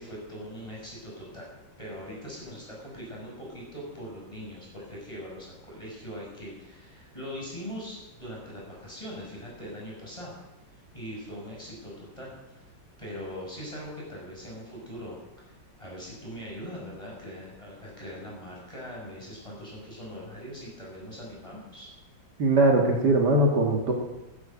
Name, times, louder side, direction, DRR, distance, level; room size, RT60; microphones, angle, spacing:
voice 1, 0.0-1.5 1.8-10.3 10.9-12.7 13.0-15.2 15.4-21.9, equal, 15° left, -4 dB, 5.6 m, -41 dB
voice 2, 22.4-23.9, right 2 dB, 60° right, 1 dB, 2.2 m, -21 dB
11.0 x 10.5 x 8.6 m, 1.0 s
omnidirectional pair, 2.1 m